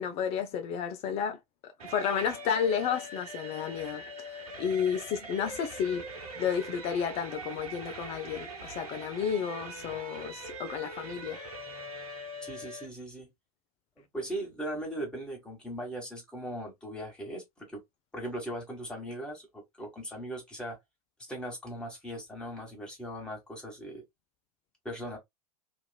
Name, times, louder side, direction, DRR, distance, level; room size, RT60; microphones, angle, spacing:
voice 1, 0.0-1.4 1.8-4.3 4.6-6.1 6.4-11.4, left 7 dB, 30° left, 0.4 m, -32 dB
sound 1, 1.8-12.8, right 1 dB, 70° right, 1.2 m, -42 dB
voice 2, 12.4-13.3 14.0-17.8 18.1-20.8 21.3-24.0 24.8-25.2, right 1 dB, 5° left, 1.5 m, -39 dB
2.9 x 2.4 x 2.3 m
figure-of-eight pair, 85°, 19 cm